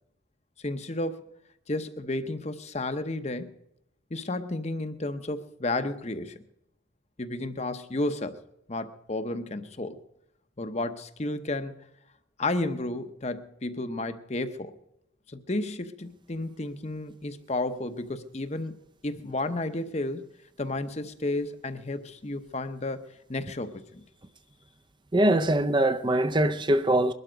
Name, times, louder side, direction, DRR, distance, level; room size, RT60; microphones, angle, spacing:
voice 1, 0.6-1.2 1.7-3.5 4.1-6.4 7.2-8.4 8.7-10.0 10.6-11.7 12.4-14.7 15.3-18.8 19.0-20.3 20.6-24.0, left 2 dB, 35° left, 0.8 m, -32 dB
voice 2, 25.1-27.1, right 1 dB, 25° right, 0.6 m, -22 dB
21.5 x 12.0 x 5.1 m
head